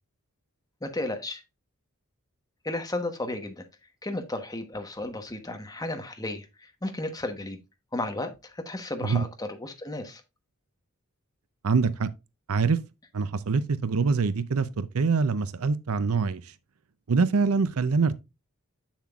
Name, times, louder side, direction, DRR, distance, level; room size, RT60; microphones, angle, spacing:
voice 1, 0.8-1.4 2.6-3.7 4.0-7.6 7.9-10.2, left 2 dB, 15° left, 1.1 m, -33 dB
voice 2, 11.6-12.1 12.5-12.8 13.1-16.5 17.1-18.2, right 4 dB, 80° right, 0.6 m, -24 dB
7.5 x 7.2 x 2.4 m
head